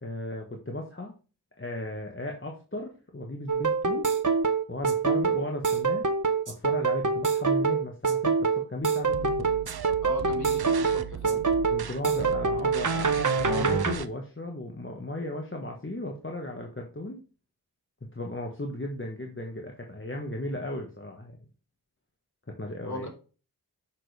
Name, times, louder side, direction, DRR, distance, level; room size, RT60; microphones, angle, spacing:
voice 1, 0.0-1.1 1.6-4.1 4.7-6.1 6.5-9.5 11.3-11.4 11.7-17.2 18.1-21.4 22.6-23.1, left 1 dB, 30° left, 1 dB, 1.6 m, -36 dB
sound 1, 3.5-13.9, right 5 dB, 50° right, 1.1 m, -25 dB
sound 2, 9.1-14.1, right 8 dB, 75° right, 0.7 m, -38 dB
voice 2, 10.0-11.5 22.8-23.1, left 1 dB, 50° left, 1 dB, 4.1 m, -38 dB
7.4 x 6.2 x 3.4 m, 0.34 s
cardioid pair, 40°, 39 cm